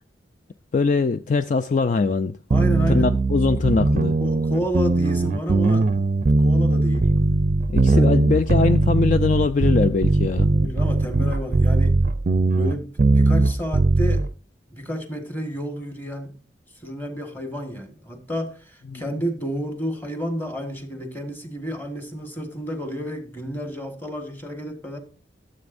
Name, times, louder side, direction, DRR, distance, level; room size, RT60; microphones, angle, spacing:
voice 1, 0.7-2.4 2.9-4.2 7.7-10.5 18.9-19.0, left 4 dB, 40° left, 0.4 m, -22 dB
voice 2, 2.5-3.1 4.2-6.0 6.4-7.1 7.9-8.1 10.4-12.0 12.6-14.2 14.7-16.4 16.8-25.0, equal, 10° left, 1.5 m, -30 dB
sound 1, 2.5-14.3, right 3 dB, 40° right, 0.5 m, -19 dB
13.0 x 7.8 x 2.5 m
head